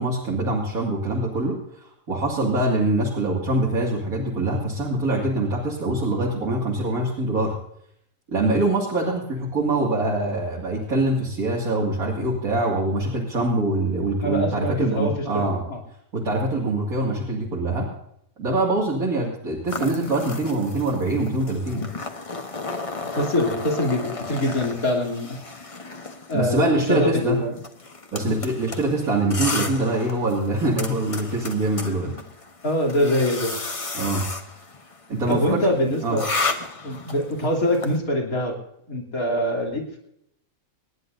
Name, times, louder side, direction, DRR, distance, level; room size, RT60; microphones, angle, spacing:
voice 1, 0.0-7.6 8.3-15.6 16.1-17.9 18.4-21.9 26.3-27.4 28.1-32.1 33.9-34.2 35.1-35.6 36.0-36.2, right 2 dB, 85° right, -4 dB, 2.8 m, -24 dB
voice 2, 14.2-15.8 23.0-25.4 26.3-27.6 28.2-28.4 32.0-32.1 32.6-33.5 35.3-36.3 36.8-38.6 38.9-40.0, left 1 dB, 80° left, -1 dB, 3.5 m, -24 dB
sound 1, 19.7-38.0, left 3 dB, 25° left, 1.0 m, -33 dB
27.0 x 10.5 x 2.7 m, 0.74 s
omnidirectional pair, 1.5 m